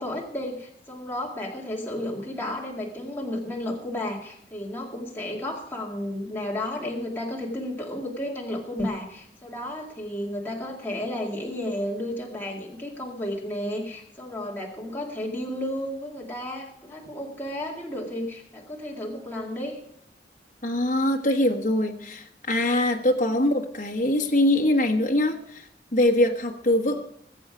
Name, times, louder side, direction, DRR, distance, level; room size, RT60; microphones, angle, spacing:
voice 1, 0.0-19.8 23.3-23.5, left 1 dB, 10° left, -2 dB, 2.2 m, -32 dB
voice 2, 20.6-25.7 25.9-27.0, left 1 dB, 45° left, 2 dB, 1.3 m, -23 dB
21.0 x 7.9 x 5.0 m, 0.72 s
head